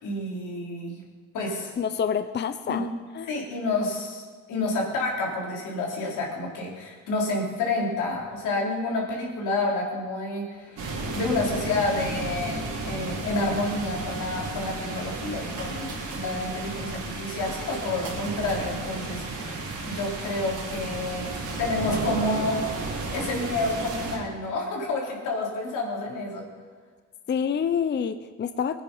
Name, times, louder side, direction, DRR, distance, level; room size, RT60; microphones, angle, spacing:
voice 1, 0.0-1.0 1.3-1.7 2.7-2.8 3.3-26.4, left 2 dB, 90° left, -2 dB, 3.8 m, -29 dB
voice 2, 1.8-2.9 3.2-3.3 27.3-28.8, left 7 dB, 35° left, 10 dB, 0.6 m, -27 dB
sound 1, 10.8-24.2, right 3 dB, 75° right, 3.8 m, -33 dB
19.0 x 9.5 x 5.5 m, 1.5 s
cardioid pair, 90°, 30 cm